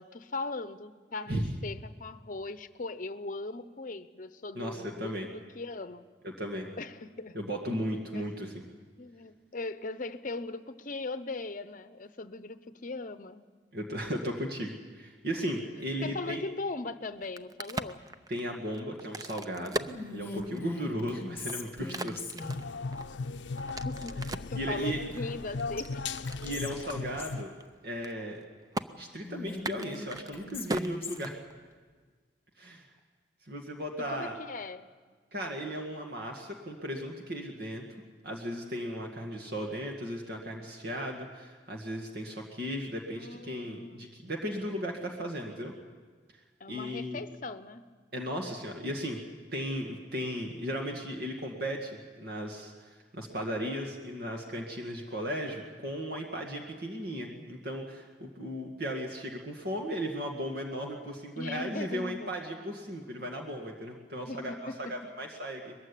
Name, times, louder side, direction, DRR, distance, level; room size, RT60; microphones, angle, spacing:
voice 1, 0.0-6.1 6.8-7.4 8.1-8.5 9.0-13.5 16.0-18.0 23.8-26.0 34.0-34.9 43.2-44.1 46.6-47.8 61.4-62.3 63.2-63.3 64.3-64.8, left 3 dB, 45° left, 12 dB, 0.8 m, -39 dB
voice 2, 4.5-5.3 6.2-6.7 7.3-8.6 13.7-16.4 18.3-22.2 24.5-25.0 26.4-27.5 27.8-28.4 28.9-31.4 32.6-32.9 33.4-34.4 35.3-37.9 38.2-45.7 46.7-47.2 48.1-49.2 49.5-65.7, equal, 55° right, 1 dB, 2.0 m, -36 dB
Crack, 17.1-20.8 21.3-24.6 25.2-26.5 26.9-27.0 27.3-27.6 27.9-28.4 28.7-28.9 29.5-31.8, right 2 dB, 20° right, 0.5 m, -39 dB
Whispering, 19.9-22.7 24.7-25.5 25.8-25.9 26.3-27.4 29.2-31.4, left 3 dB, 15° left, 1.5 m, -41 dB
sound 1, 22.4-27.4, left 3 dB, 75° left, 0.6 m, -37 dB
21.5 x 15.5 x 9.9 m, 1.5 s
head